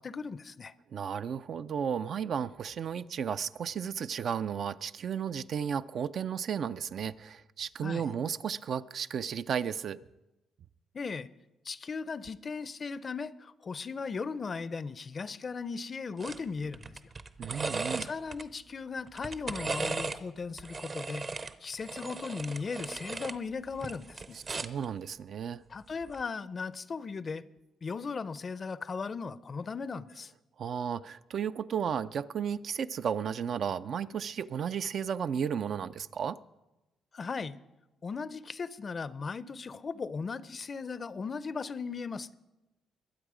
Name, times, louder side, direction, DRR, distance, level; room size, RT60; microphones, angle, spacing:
voice 1, 0.0-0.7 7.8-8.1 10.9-11.3 11.6-17.0 18.0-21.3 21.6-24.4 25.7-27.4 27.8-30.3 37.1-37.6 38.0-42.3, left 5 dB, 40° left, 17 dB, 0.5 m, -37 dB
voice 2, 0.9-10.0 17.4-18.1 24.5-25.6 30.6-36.4, right 7 dB, 60° right, 13 dB, 0.4 m, -34 dB
sound 1, 16.2-16.4 16.7-18.4 19.1-20.2 20.6-23.4 23.7-24.8 26.0-26.2, right 4 dB, 40° right, 0.7 m, -37 dB
21.5 x 8.1 x 4.9 m, 1.0 s
cardioid pair, 90°, 0 cm